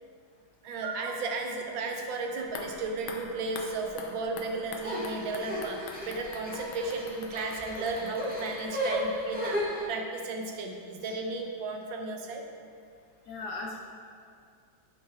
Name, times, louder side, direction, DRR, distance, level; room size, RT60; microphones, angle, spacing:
voice 1, 0.6-12.4, right 3 dB, 80° right, 2 dB, 1.6 m, -34 dB
sound 1, 2.4-9.5 9.8-9.9, left 4 dB, 90° left, 1.5 m, -45 dB
sound 2, 4.8-9.8, equal, 5° right, 0.8 m, -34 dB
voice 2, 13.3-13.8, left 3 dB, 65° left, -2 dB, 1.2 m, -38 dB
9.3 x 5.9 x 3.5 m, 2.3 s
omnidirectional pair, 2.1 m